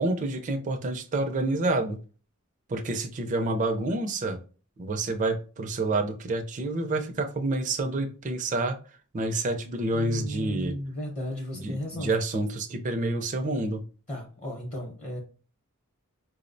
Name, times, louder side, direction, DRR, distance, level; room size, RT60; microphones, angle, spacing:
voice 1, 0.0-2.0 2.7-4.4 4.8-8.8 9.1-10.7 11.5-13.8, right 2 dB, 35° right, 5 dB, 0.4 m, -28 dB
voice 2, 9.9-12.1 14.1-15.2, equal, 30° left, -1 dB, 0.7 m, -34 dB
4.6 x 2.0 x 2.5 m, 0.37 s
head